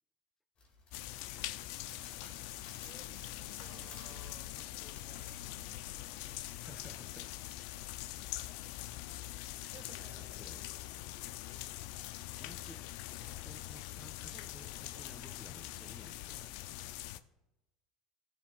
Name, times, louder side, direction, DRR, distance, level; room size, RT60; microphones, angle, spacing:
sound 1, 0.6-6.5, left 3 dB, 40° left, 2.2 m, -58 dB
sound 2, 0.9-17.2, left 15 dB, 70° left, 0.4 m, -43 dB
voice 1, 2.6-7.2 7.5-7.8 9.6-10.9 12.7-12.9 13.3-13.6 14.2-15.5, right 4 dB, 45° right, 2.4 m, -61 dB
voice 2, 6.6-7.4 10.2-10.6 12.3-12.9 13.2-16.6, left 1 dB, 5° left, 0.5 m, -56 dB
17.0 x 6.4 x 2.4 m
hypercardioid pair, 85°, 3 cm